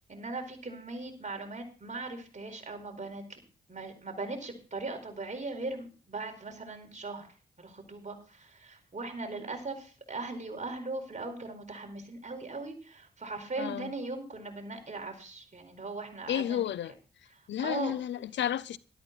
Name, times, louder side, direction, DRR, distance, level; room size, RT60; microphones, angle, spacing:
voice 1, 0.1-3.4 3.7-7.3 7.6-16.7 17.3-17.9, right 3 dB, 40° right, 4.6 m, -39 dB
voice 2, 13.6-13.9 16.3-16.9 17.5-18.8, left 10 dB, 85° left, 0.6 m, -32 dB
13.0 x 12.5 x 4.1 m
cardioid pair, 55°, 18 cm